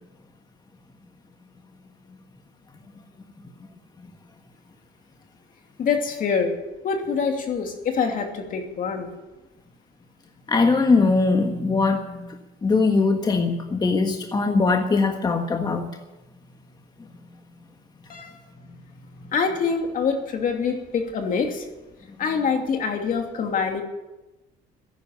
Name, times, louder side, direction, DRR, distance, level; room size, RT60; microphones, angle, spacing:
voice 1, 5.8-6.5 6.8-9.1 18.1-18.3 19.3-21.6 22.2-23.8, left 5 dB, 55° left, 4 dB, 2.8 m, -25 dB
voice 2, 10.5-12.3 12.6-15.9, left 3 dB, 25° left, 4 dB, 1.4 m, -21 dB
14.5 x 11.0 x 8.8 m, 1.1 s
cardioid pair, 110°, 17 cm